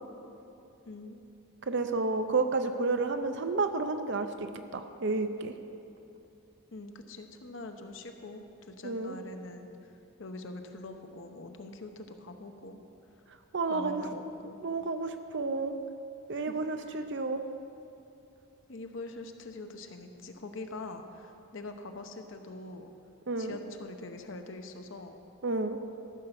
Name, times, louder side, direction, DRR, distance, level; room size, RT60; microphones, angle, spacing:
voice 1, 0.9-1.3 6.7-9.7 10.2-12.8 13.7-14.6 16.3-16.6 16.9-17.0 18.7-22.9 23.4-25.1, left 2 dB, 60° left, 6 dB, 0.8 m, -44 dB
voice 2, 1.7-5.5 8.8-9.2 13.5-14.0 14.6-15.7 16.3-17.4 23.3-23.6 25.4-25.8, right 3 dB, 55° right, 8 dB, 0.6 m, -31 dB
14.0 x 6.6 x 5.9 m, 2.7 s
head